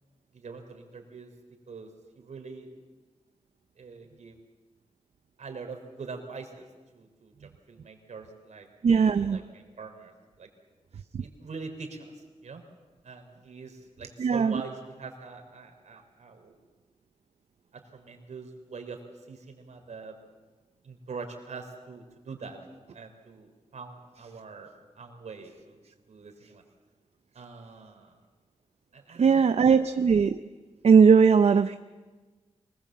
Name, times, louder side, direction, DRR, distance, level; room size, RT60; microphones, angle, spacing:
voice 1, 0.3-1.3 1.7-2.7 3.8-4.4 5.4-6.7 6.9-10.1 10.4-10.5 11.2-12.1 12.4-12.6 13.0-16.6 17.7-19.0 19.3-20.1 20.8-22.6 22.9-24.7 25.0-25.8 26.1-26.6 27.3-28.2 28.9-29.9, right 4 dB, 75° right, 4 dB, 3.7 m, -43 dB
voice 2, 8.8-9.4 11.1-11.2 14.2-14.6 29.2-30.4 30.8-31.8, right 6 dB, 60° right, 10 dB, 0.6 m, -19 dB
24.0 x 19.5 x 7.5 m, 1.3 s
wide cardioid pair, 180°, 12 cm